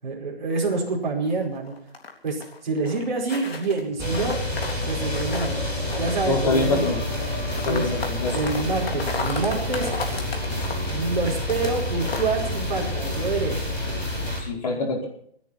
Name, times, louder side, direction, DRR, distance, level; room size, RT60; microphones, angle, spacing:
voice 1, 0.0-1.7 2.2-4.4 4.9-5.6 5.9-6.9 7.7-7.9 8.3-9.9 10.9-13.6, right 3 dB, 45° right, -1 dB, 5.1 m, -27 dB
sound 1, 0.7-2.6 2.9-3.8 4.1-5.6 5.9-11.7 12.0-12.3 12.7-13.1, left 4 dB, 70° left, 3.6 m, -34 dB
sound 2, 4.0-14.4, left 1 dB, 10° left, 4.6 m, -28 dB
voice 2, 6.3-7.0 7.7-8.4 14.4-15.1, left 3 dB, 40° left, 0 dB, 4.7 m, -25 dB
28.0 x 10.0 x 4.2 m, 0.65 s
hypercardioid pair, 180°, 32 cm